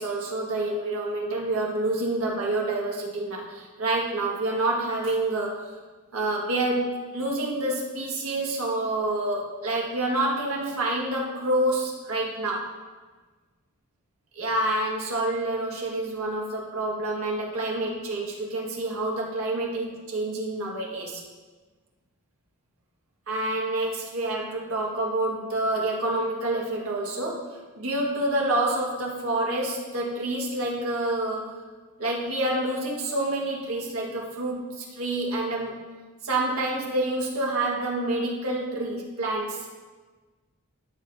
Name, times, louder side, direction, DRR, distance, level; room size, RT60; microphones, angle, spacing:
voice 1, 0.0-5.7 6.1-12.7 14.3-21.2 23.3-31.6 32.0-35.8 36.2-39.7, right 2 dB, 65° right, -2 dB, 1.7 m, -28 dB
13.0 x 6.6 x 2.7 m, 1.3 s
head